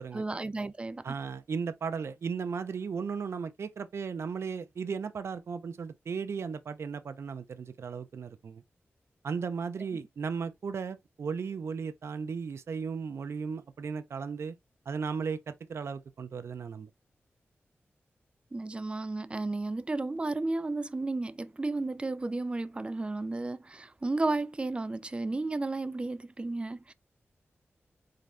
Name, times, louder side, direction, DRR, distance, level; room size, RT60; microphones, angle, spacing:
voice 1, 0.1-1.0 18.5-26.9, right 2 dB, 25° right, 0.4 m, -33 dB
voice 2, 1.0-8.6 9.2-14.5 14.9-16.9, right 5 dB, 75° right, 0.5 m, -36 dB
4.2 x 3.9 x 3.2 m
wide cardioid pair, 110°, 5 cm